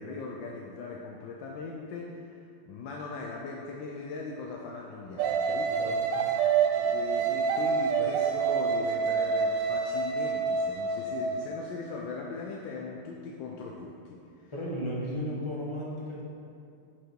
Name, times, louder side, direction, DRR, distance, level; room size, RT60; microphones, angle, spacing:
voice 1, 0.0-5.7 6.7-14.5, left 4 dB, 75° left, -1 dB, 1.3 m, -40 dB
sound 1, 5.2-11.5, right 6 dB, 75° right, 1.2 m, -27 dB
voice 2, 5.7-6.3 14.5-16.2, equal, 15° left, -6 dB, 1.2 m, -35 dB
7.6 x 5.4 x 4.6 m, 2.6 s
omnidirectional pair, 2.2 m